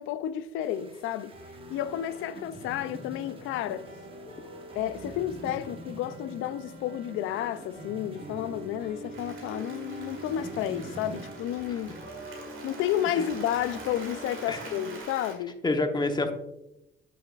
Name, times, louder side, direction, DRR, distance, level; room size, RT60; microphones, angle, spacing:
voice 1, 0.0-1.3 1.7-3.9 4.8-12.0 12.6-15.6, left 11 dB, 90° left, 0.4 m, -31 dB
sound 1, 0.6-11.3, right 1 dB, 25° right, 1.0 m, -47 dB
Piano, 1.3-15.0, right 1 dB, 70° right, 1.8 m, -45 dB
Applause, 9.1-15.3, right 3 dB, 90° right, 1.7 m, -45 dB
voice 2, 15.6-16.3, left 2 dB, 20° left, 0.9 m, -28 dB
8.7 x 5.9 x 2.4 m
cardioid pair, 90°, 20 cm